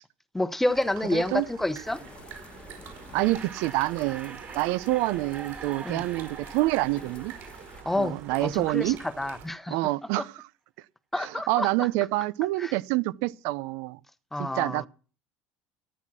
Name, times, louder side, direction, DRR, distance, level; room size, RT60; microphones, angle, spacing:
voice 1, 0.3-2.0 5.8-6.1 7.8-9.8 10.2-10.3 11.1-11.9 12.6-12.7 14.3-14.9, left 1 dB, 5° left, 0.9 m, -29 dB
sound 1, 0.7-9.5, right 8 dB, 50° right, 5.2 m, -46 dB
voice 2, 1.1-1.4 3.1-7.3 8.0-9.0 9.7-10.3 11.2-14.0 14.4-14.9, right 19 dB, 75° right, 0.6 m, -27 dB
sound 2, 1.8-7.8, left 6 dB, 25° left, 1.1 m, -50 dB
sound 3, 3.2-8.7, right 6 dB, 30° right, 3.1 m, -44 dB
15.0 x 10.0 x 6.2 m
cardioid pair, 150°, 5 cm